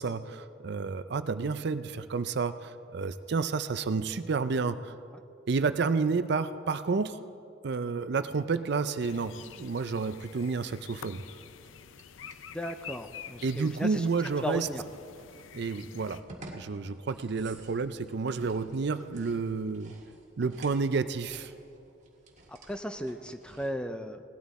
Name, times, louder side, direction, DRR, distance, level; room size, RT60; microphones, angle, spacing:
voice 1, 0.0-4.9 5.5-7.2 7.6-11.2 13.4-14.7 15.5-16.2 16.5-19.9 20.4-21.5, right 4 dB, 60° right, 12 dB, 0.5 m, -30 dB
sound 1, 9.0-16.2, left 8 dB, 80° left, 0.5 m, -48 dB
sound 2, 9.4-23.7, right 2 dB, 40° right, 1.6 m, -54 dB
voice 2, 12.5-14.1 14.4-14.8 22.5-24.2, equal, 5° left, 8 dB, 0.5 m, -36 dB
18.0 x 12.5 x 4.2 m, 2.4 s
head